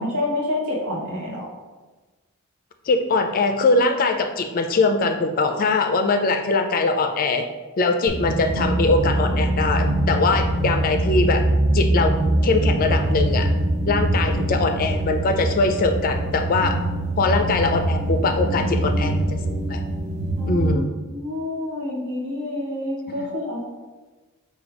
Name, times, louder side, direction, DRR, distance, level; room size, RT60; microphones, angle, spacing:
voice 1, 0.0-1.5 20.4-20.8 21.1-23.6, left 1 dB, 75° right, -3 dB, 1.2 m, -28 dB
voice 2, 2.9-7.4 7.8-11.4 11.7-12.1 12.4-13.5 13.9-16.8 17.2-19.8 20.5-20.9 23.2-23.3, left 3 dB, 40° left, 6 dB, 0.4 m, -22 dB
sound 1, 8.1-20.7, right 1 dB, 30° right, 0.6 m, -23 dB
5.0 x 2.3 x 4.7 m, 1.2 s
head